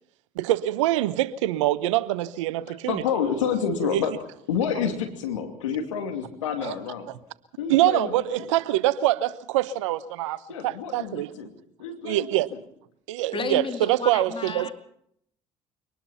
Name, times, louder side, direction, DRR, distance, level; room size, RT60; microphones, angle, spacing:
voice 1, 0.4-3.0 3.9-4.0 6.6-6.7 7.7-11.3 12.0-12.5 13.1-14.7, right 14 dB, 85° right, 0.9 m, -24 dB
voice 2, 2.7-4.1 4.5-7.1 7.6-8.5 10.5-11.5 11.8-12.6, left 7 dB, 90° left, 2.7 m, -29 dB
voice 3, 13.3-14.7, left 4 dB, 35° left, 3.5 m, -32 dB
24.5 x 19.5 x 5.7 m
hypercardioid pair, 55°, 16 cm